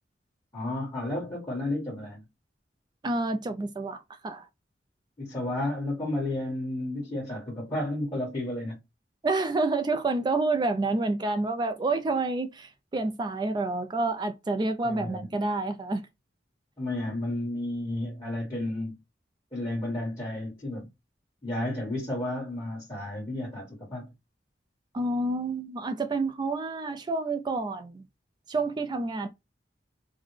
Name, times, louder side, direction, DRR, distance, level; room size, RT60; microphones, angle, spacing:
voice 1, 0.5-2.2 5.2-8.8 14.8-15.3 16.8-18.9 19.5-20.9 21.4-24.1, left 1 dB, 20° left, 1.4 m, -32 dB
voice 2, 3.0-4.5 9.2-16.1 24.9-28.0 28.5-29.3, right 3 dB, 25° right, 0.3 m, -28 dB
3.9 x 2.1 x 3.1 m
head